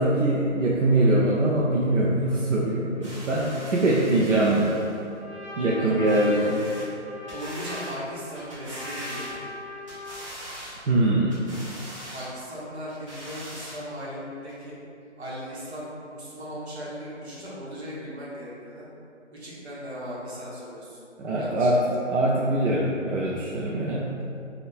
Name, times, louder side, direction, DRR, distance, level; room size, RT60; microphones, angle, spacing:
voice 1, 0.0-4.7 5.6-6.6 10.9-11.4 21.2-21.8 22.1-24.1, right 1 dB, 85° right, -5 dB, 0.5 m, -23 dB
sound 1, 3.0-5.0 6.0-6.9 7.3-8.0 8.3-9.6 9.9-10.8 11.3-12.3 12.9-13.8 14.5-14.6, equal, 25° right, 0.6 m, -41 dB
Trumpet, 4.7-10.4, left 2 dB, 5° left, 0.9 m, -40 dB
voice 2, 5.8-6.5 7.3-9.3 12.1-14.8 15.2-18.9 19.3-21.0 21.4-21.7, equal, 60° right, -6 dB, 1.1 m, -37 dB
2.5 x 2.3 x 3.5 m, 2.6 s
figure-of-eight pair, 155°, 36 cm